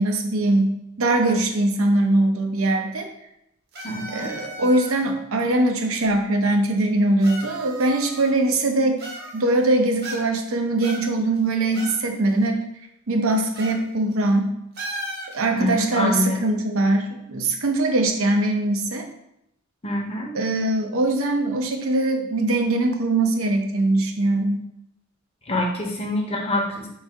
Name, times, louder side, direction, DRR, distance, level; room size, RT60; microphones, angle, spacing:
voice 1, 0.0-3.1 4.1-9.0 9.3-12.6 13.1-14.5 15.3-19.1 20.3-24.6, right 2 dB, 85° right, 3 dB, 0.7 m, -21 dB
sound 1, 3.7-5.1 6.0-6.1 7.2-8.5 9.0-9.6 10.0-10.5 10.8-12.0 12.3-12.4 13.5-13.8 14.1-14.3 14.7-15.4, right 1 dB, 50° right, 0.9 m, -36 dB
voice 2, 3.8-4.3 15.5-16.4 19.8-20.4 25.5-26.9, left 1 dB, 30° left, 1 dB, 0.7 m, -25 dB
3.9 x 2.6 x 4.7 m, 0.80 s
head